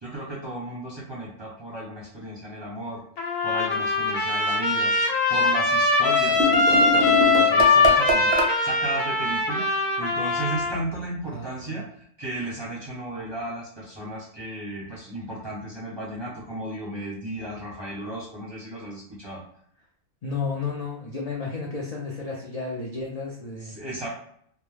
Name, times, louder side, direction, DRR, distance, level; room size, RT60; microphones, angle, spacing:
voice 1, 0.0-3.0 3.4-4.9 5.3-9.6 10.0-19.4 23.6-24.1, right 1 dB, 30° right, -5 dB, 0.6 m, -35 dB
Trumpet, 3.2-10.8, left 3 dB, 90° left, 1.1 m, -21 dB
sound 1, 6.3-8.5, equal, 65° right, 0.7 m, -24 dB
voice 2, 11.3-11.8 20.2-23.8, left 4 dB, 70° left, -4 dB, 0.3 m, -32 dB
2.2 x 2.1 x 3.1 m, 0.66 s
omnidirectional pair, 1.4 m